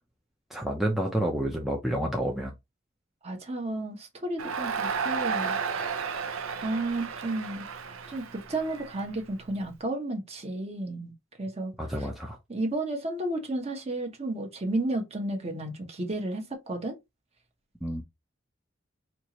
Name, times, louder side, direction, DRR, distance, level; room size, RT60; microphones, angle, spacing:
voice 1, 0.5-2.5 11.8-12.4 17.8-18.0, right 1 dB, ahead, 0.5 m, -29 dB
voice 2, 3.2-5.6 6.6-7.7 8.1-11.1 11.4-12.1 12.5-17.0, right 2 dB, 30° right, 1.0 m, -32 dB
Crowd, 4.4-9.6, right 6 dB, 80° right, 0.6 m, -33 dB
4.4 x 2.5 x 2.9 m
head